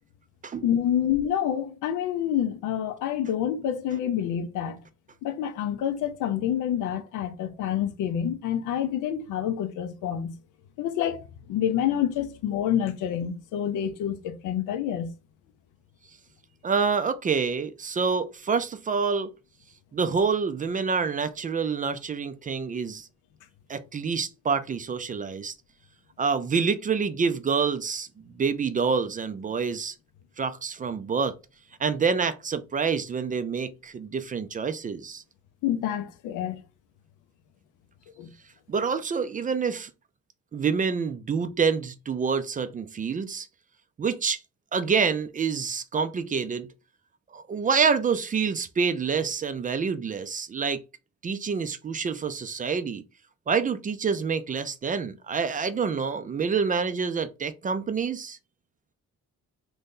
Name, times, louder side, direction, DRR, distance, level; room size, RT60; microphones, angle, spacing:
voice 1, 0.6-4.8 5.2-10.3 10.8-11.2 11.5-15.1 35.6-36.6 38.2-38.3, left 10 dB, 85° left, 0.6 m, -27 dB
voice 2, 16.6-19.3 19.9-23.1 23.7-25.5 26.2-29.9 30.4-31.3 31.8-35.2 38.7-39.9 40.5-43.5 44.0-44.4 44.7-46.7 47.3-50.8 51.2-53.0 53.5-58.4, right 5 dB, 30° right, 0.3 m, -27 dB
2.7 x 2.6 x 3.6 m
cardioid pair, 90°, 30 cm